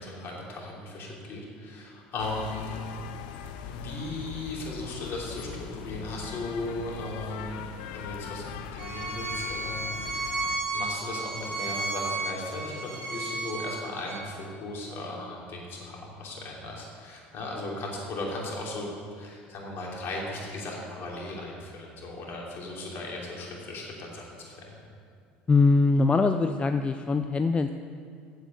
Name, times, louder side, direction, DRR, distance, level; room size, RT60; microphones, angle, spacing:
voice 1, 0.0-2.9 3.7-7.6 7.9-8.5 8.7-10.3 10.7-18.9 19.2-24.7, left 2 dB, 55° left, -2 dB, 3.1 m, -37 dB
sound 1, 2.2-10.6, left 8 dB, 80° left, 0.6 m, -40 dB
Bowed string instrument, 8.8-14.2, right 2 dB, 70° right, 2.4 m, -33 dB
voice 2, 25.5-27.7, left 3 dB, 25° left, 8 dB, 0.4 m, -22 dB
8.2 x 8.1 x 8.0 m, 2.3 s
hypercardioid pair, 80°, 5 cm